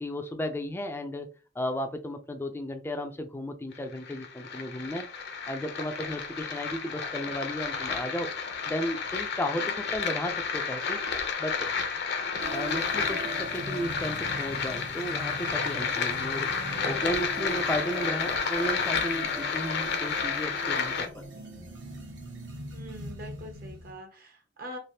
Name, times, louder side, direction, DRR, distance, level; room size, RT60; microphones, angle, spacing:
voice 1, 0.0-1.3 1.6-5.1 5.5-8.3 8.6-11.0 11.4-11.7 12.5-16.5 16.8-21.2, equal, 10° left, 0.3 m, -34 dB
sound 1, 3.7-21.1, left 5 dB, 60° left, 0.6 m, -31 dB
sound 2, 12.4-23.9, right 1 dB, 80° right, 1.0 m, -41 dB
voice 2, 22.7-24.8, equal, 55° right, 0.8 m, -44 dB
3.2 x 2.4 x 2.7 m
head